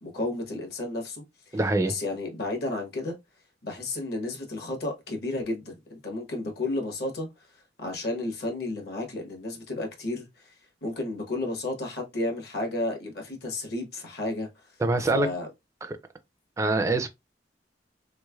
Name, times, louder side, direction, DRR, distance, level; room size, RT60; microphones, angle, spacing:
voice 1, 0.0-1.2 1.5-1.6 1.9-3.2 3.6-7.3 7.8-10.5 10.8-14.5 15.1-15.5, left 2 dB, 60° left, 1.1 m, -32 dB
voice 2, 1.5-1.9 14.8-15.3 16.6-17.1, right 2 dB, 15° right, 0.4 m, -24 dB
3.3 x 3.1 x 2.3 m
head